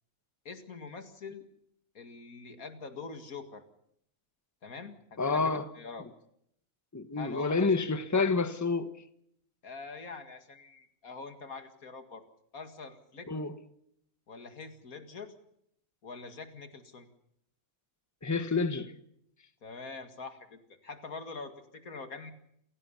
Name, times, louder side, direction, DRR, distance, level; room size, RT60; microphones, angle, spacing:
voice 1, 0.4-1.5 1.9-3.6 4.6-6.1 7.2-7.7 9.6-12.2 12.5-13.3 14.3-15.3 16.0-17.1 19.6-22.3, left 4 dB, 90° left, 2.6 m, -44 dB
voice 2, 5.2-5.7 6.9-8.9 13.3-13.5 18.2-18.9, left 4 dB, 15° left, 1.2 m, -28 dB
28.0 x 17.0 x 7.1 m
omnidirectional pair, 1.5 m